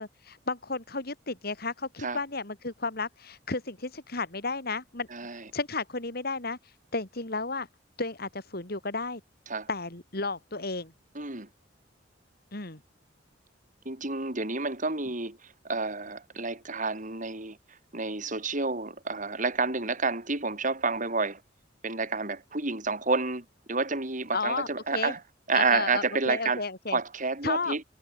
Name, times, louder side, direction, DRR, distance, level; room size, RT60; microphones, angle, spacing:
voice 1, 0.0-5.1 5.5-6.6 6.9-7.7 8.0-9.2 9.7-10.9 12.5-12.8 24.3-25.1 25.5-27.0 27.4-27.8, left 3 dB, 55° left, 3.6 m, -33 dB
voice 2, 5.1-5.5 9.5-9.7 11.1-11.5 13.8-15.4 15.6-17.6 17.9-21.4 21.8-25.2 25.5-27.8, right 3 dB, 45° right, 4.4 m, -29 dB
head